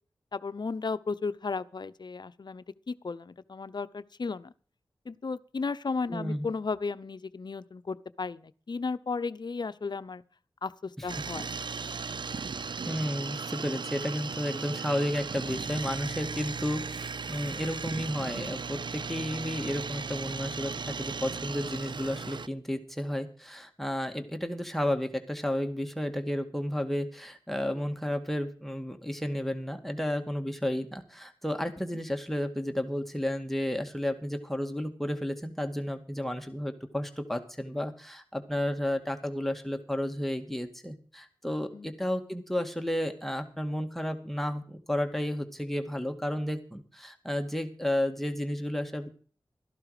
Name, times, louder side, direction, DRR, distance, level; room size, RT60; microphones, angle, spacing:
voice 1, 0.3-4.5 5.0-10.2 10.6-11.5 31.8-31.9 41.7-41.9, left 4 dB, 60° left, 14 dB, 0.8 m, -34 dB
voice 2, 6.1-6.5 11.0-11.1 12.9-49.1, left 1 dB, 5° left, 7 dB, 2.2 m, -32 dB
sound 1, 11.1-22.5, right 5 dB, 65° right, 0.6 m, -36 dB
13.5 x 12.0 x 5.0 m, 0.41 s
cardioid pair, 40°, 8 cm